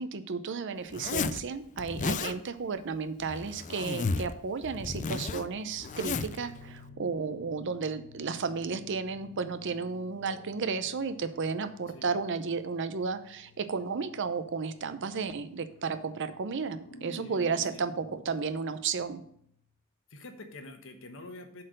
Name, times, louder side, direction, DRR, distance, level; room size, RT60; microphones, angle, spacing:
voice 1, 0.0-19.2, right 5 dB, 60° right, 12 dB, 0.6 m, -33 dB
Zipper (clothing), 0.9-1.4 1.8-2.4 3.2-4.3 4.6-6.4, left 4 dB, 35° left, 0.4 m, -33 dB
sound 1, 5.1-19.7, left 2 dB, 85° left, 1.6 m, -53 dB
voice 2, 11.9-12.2 17.2-17.9 20.1-21.6, left 2 dB, 65° left, 6 dB, 1.2 m, -47 dB
7.4 x 4.4 x 6.5 m, 0.66 s
head